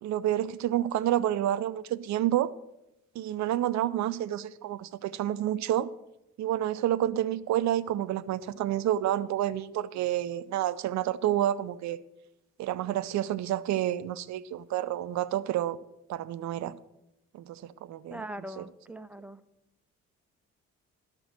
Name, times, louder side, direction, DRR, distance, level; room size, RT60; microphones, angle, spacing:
voice 1, 0.0-2.5 3.1-5.9 6.4-12.0 12.6-15.8 16.1-16.7 17.3-18.2 18.6-18.7, right 12 dB, 45° right, 0.6 m, -29 dB
voice 2, 18.1-19.4, right 1 dB, 5° right, 0.6 m, -41 dB
12.0 x 6.0 x 7.9 m
figure-of-eight pair, 40°, 39 cm